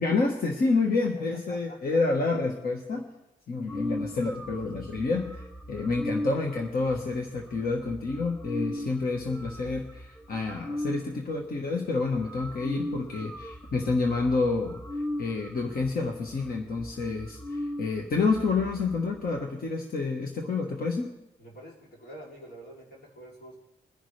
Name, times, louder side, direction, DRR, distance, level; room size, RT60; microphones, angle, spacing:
voice 1, 0.0-3.0 3.5-14.8 15.2-21.1, left 3 dB, 65° left, 2 dB, 1.4 m, -28 dB
voice 2, 1.5-2.0 21.4-23.6, right 1 dB, 90° left, -3 dB, 3.2 m, -47 dB
sound 1, 3.7-11.1 11.7-11.8 12.1-19.4, left 1 dB, 10° left, 0.9 m, -38 dB
22.0 x 10.0 x 3.3 m, 0.95 s
cardioid pair, 60°, 17 cm